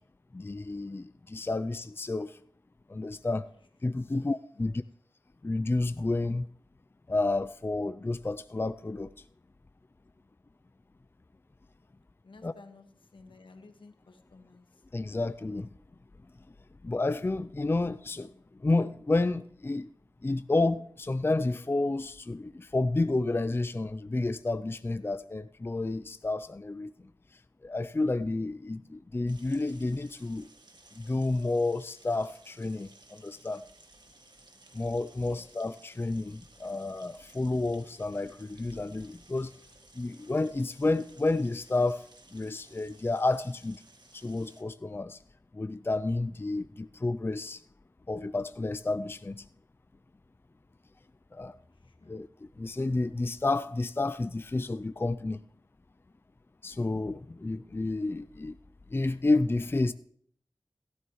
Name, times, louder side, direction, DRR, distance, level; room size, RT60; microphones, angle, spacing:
voice 1, 0.3-2.3 2.9-3.4 3.8-4.8 5.4-6.5 7.1-9.1 12.4-12.5 14.9-15.7 16.8-18.3 18.6-19.9 20.2-26.9 27.6-30.5 31.0-33.6 34.7-39.5 40.0-42.0 42.3-43.8 44.1-45.2 45.5-47.6 48.1-49.4 51.3-51.5 52.1-52.3 52.6-55.4 56.6-58.5 58.9-59.9, left 2 dB, 25° left, 0.4 m, -30 dB
voice 2, 12.2-12.8 13.1-14.8 35.2-35.5 51.7-52.2, left 3 dB, 85° left, 1.4 m, -54 dB
sound 1, 29.3-44.6, right 2 dB, 60° right, 1.6 m, -58 dB
17.0 x 12.5 x 3.1 m
wide cardioid pair, 45°, 8 cm